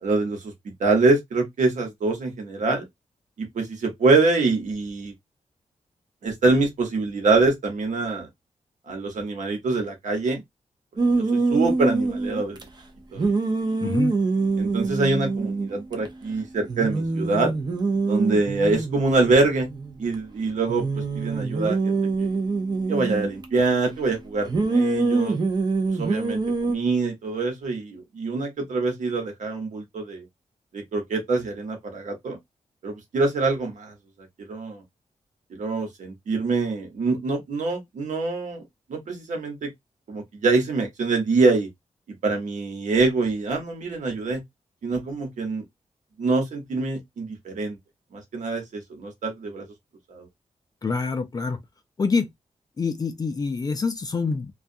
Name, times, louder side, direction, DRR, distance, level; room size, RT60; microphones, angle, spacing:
voice 1, 0.0-0.5 0.8-2.9 3.4-5.1 6.2-8.3 8.9-10.4 11.2-12.6 13.1-13.3 14.6-17.5 18.1-19.7 20.0-20.8 21.1-22.4 22.9-25.4 25.9-30.2 30.7-32.4 32.8-33.9 34.5-34.8 35.5-38.6 38.9-39.7 40.1-41.7 42.2-44.4 44.8-45.6 46.2-47.8 48.1-49.6 50.1-50.3, right 3 dB, 85° right, 1.0 m, -24 dB
sound 1, 11.0-12.6 13.2-16.1 16.3-16.4 16.7-20.1 20.7-23.4 24.5-26.7, right 3 dB, 35° right, 0.5 m, -25 dB
voice 2, 13.8-14.1 50.8-51.6 52.0-52.3 52.8-54.5, left 4 dB, 30° left, 0.4 m, -26 dB
2.3 x 2.3 x 2.6 m
wide cardioid pair, 130°, 12 cm